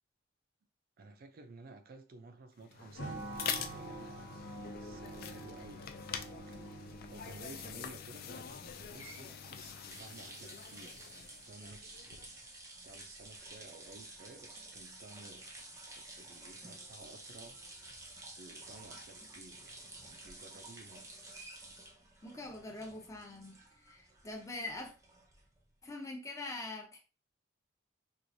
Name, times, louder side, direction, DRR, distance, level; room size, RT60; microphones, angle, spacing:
voice 1, 1.0-4.1 4.7-12.3 12.8-15.5 15.9-17.9 18.4-21.1, right 3 dB, 50° right, 0.4 m, -54 dB
sound 1, 2.6-12.4, left 7 dB, 50° left, 0.4 m, -45 dB
sound 2, 3.0-8.1, right 2 dB, 75° left, 1.0 m, -46 dB
sound 3, 8.7-25.7, right 2 dB, 15° right, 0.7 m, -52 dB
voice 2, 22.2-24.9 25.8-27.0, left 2 dB, 15° left, 0.7 m, -43 dB
4.5 x 2.4 x 2.6 m
head